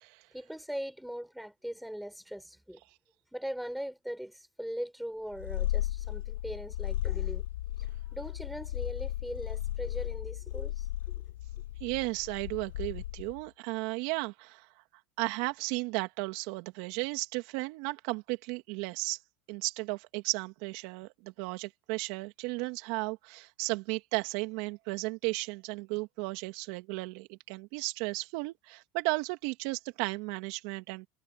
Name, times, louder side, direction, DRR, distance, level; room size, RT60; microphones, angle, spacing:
voice 1, 0.3-2.8 3.3-7.4 8.1-11.2, equal, ahead, 4.5 m, -40 dB
Purr, 5.3-13.4, left 15 dB, 85° left, 3.9 m, -35 dB
voice 2, 11.8-14.7 15.2-19.2 19.5-31.1, right 24 dB, 65° right, 2.4 m, -34 dB
hypercardioid pair, 95°, 0 cm